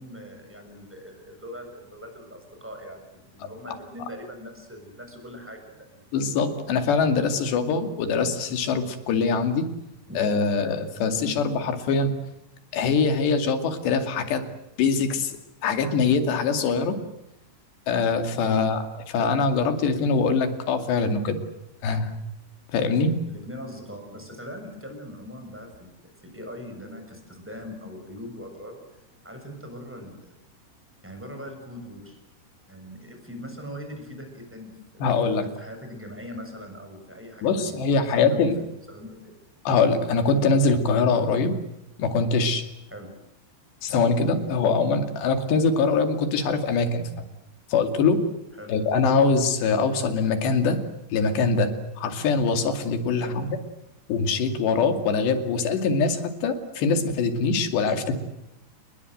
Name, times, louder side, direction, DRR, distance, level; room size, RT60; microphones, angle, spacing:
voice 1, 0.0-6.1 10.1-10.7 11.1-11.4 18.4-18.7 23.2-28.8 29.2-30.3 31.0-32.2 32.7-37.8 38.0-38.5 38.9-39.4 42.9-43.2 48.6-48.7 53.1-53.4, left 1 dB, 5° right, 4 dB, 6.7 m, -41 dB
voice 2, 6.1-9.7 10.2-12.1 12.7-14.4 14.8-17.0 17.9-18.8 19.1-21.4 21.8-22.1 22.7-23.2 35.0-35.5 37.4-38.6 39.7-41.6 42.0-42.7 43.8-47.1 47.7-48.2 48.7-50.8 51.1-51.7 52.0-53.6 54.1-58.2, left 4 dB, 85° left, 7 dB, 4.6 m, -23 dB
29.5 x 21.0 x 8.0 m, 0.85 s
omnidirectional pair, 4.8 m